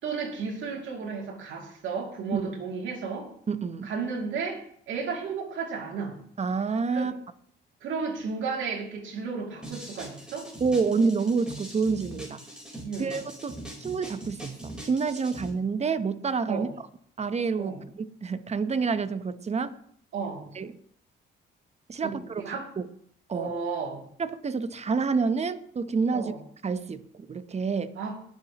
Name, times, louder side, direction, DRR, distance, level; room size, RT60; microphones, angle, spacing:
voice 1, 0.0-3.3 3.8-6.2 6.9-7.1 7.8-10.5 12.8-13.2 16.5-16.7 17.6-17.8 20.1-20.5 22.0-22.7 23.3-24.0 26.1-26.4 28.0-28.2, right 5 dB, 75° right, 1 dB, 2.7 m, -33 dB
voice 2, 3.5-3.9 6.4-7.1 10.6-12.4 13.0-16.7 17.2-19.7 20.5-20.7 21.9-22.9 23.3-23.5 24.2-26.3 26.6-27.9, right 5 dB, 35° right, 12 dB, 0.9 m, -28 dB
sound 1, 9.6-15.5, right 1 dB, 5° right, 4.1 m, -42 dB
21.5 x 7.3 x 3.0 m, 0.65 s
cardioid pair, 90°, 20 cm